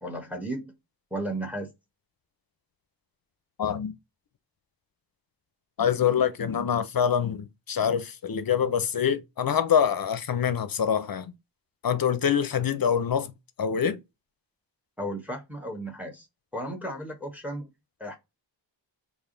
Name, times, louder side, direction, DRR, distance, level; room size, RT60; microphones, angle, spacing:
voice 1, 0.0-0.7 1.1-1.7 15.0-16.3 16.5-17.7 18.0-18.2, right 1 dB, 5° right, 1.0 m, -34 dB
voice 2, 3.6-3.9 5.8-11.3 11.8-13.3 13.6-14.0, left 8 dB, 50° left, 0.5 m, -25 dB
3.4 x 2.5 x 3.7 m
wide cardioid pair, 105°, 45 cm